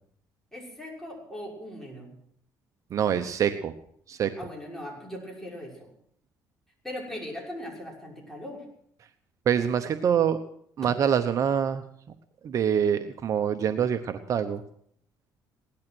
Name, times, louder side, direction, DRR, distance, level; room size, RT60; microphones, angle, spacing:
voice 1, 0.5-2.1 4.4-5.9 6.8-8.6, left 1 dB, 5° left, -2 dB, 6.1 m, -39 dB
voice 2, 2.9-3.8 4.1-4.3 9.5-10.4 10.8-11.8 12.4-14.6, right 8 dB, 50° right, 8 dB, 0.9 m, -25 dB
17.5 x 12.0 x 6.2 m, 0.65 s
cardioid pair, 110°, 7 cm